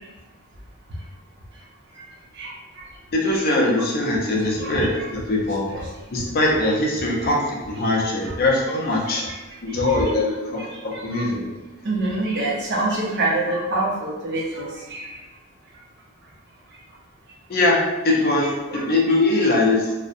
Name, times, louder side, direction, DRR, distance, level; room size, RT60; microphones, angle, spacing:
voice 1, 2.4-2.9 3.3-3.4 3.8-3.9 4.5-5.1 5.7-5.9 7.9-8.3 9.1-9.4 9.8-10.1 10.6-11.3 11.8-15.2 18.4-18.8 19.4-19.5, right 2 dB, 50° right, -3 dB, 0.5 m, -27 dB
voice 2, 3.1-5.7 6.1-9.2 9.6-11.5 17.5-17.8 18.0-19.9, left 2 dB, 40° left, -2 dB, 0.4 m, -21 dB
2.5 x 2.0 x 2.5 m, 1.1 s
head